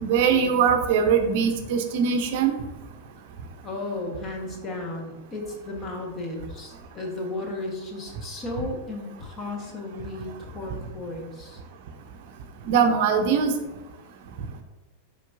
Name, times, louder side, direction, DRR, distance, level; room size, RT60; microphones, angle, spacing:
voice 1, 0.0-2.5 12.7-13.5, right 6 dB, 50° right, 6 dB, 0.7 m, -21 dB
voice 2, 3.6-11.6, left 2 dB, 25° left, 1 dB, 1.4 m, -34 dB
7.2 x 5.1 x 2.6 m, 1.1 s
figure-of-eight pair, 90°, 0 cm